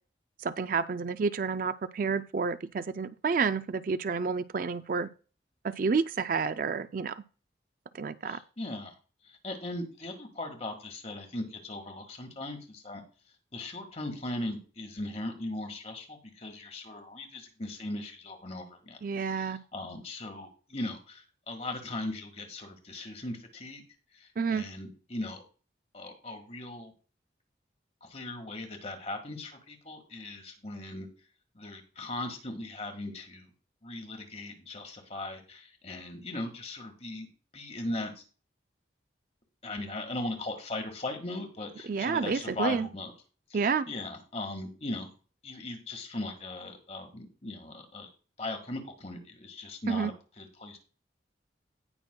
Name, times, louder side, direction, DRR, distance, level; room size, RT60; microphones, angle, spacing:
voice 1, 0.4-5.1 5.6-7.2 7.9-8.4 19.0-19.6 24.4-24.7 41.9-42.9 43.5-43.9 49.9-50.1, right 5 dB, 45° right, 12 dB, 0.4 m, -29 dB
voice 2, 8.2-8.9 9.4-13.0 13.5-19.0 19.3-23.8 24.1-25.4 25.9-26.9 28.0-31.1 31.5-33.5 33.8-37.3 37.5-38.2 39.6-43.1 43.5-45.1 45.4-48.1 48.4-50.8, left 2 dB, 35° left, 6 dB, 1.7 m, -38 dB
17.5 x 6.0 x 2.3 m, 0.36 s
head